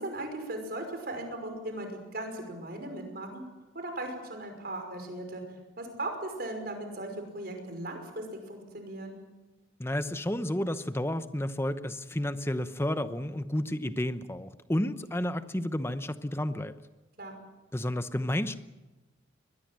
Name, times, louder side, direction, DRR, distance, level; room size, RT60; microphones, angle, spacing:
voice 1, 0.0-3.4 3.7-5.4 5.8-9.2 15.0-15.1 17.2-17.3, right 1 dB, 50° right, 5 dB, 5.5 m, -38 dB
voice 2, 9.8-16.7 17.7-18.6, left 1 dB, 15° left, 11 dB, 0.9 m, -31 dB
22.5 x 21.0 x 7.7 m, 1.1 s
head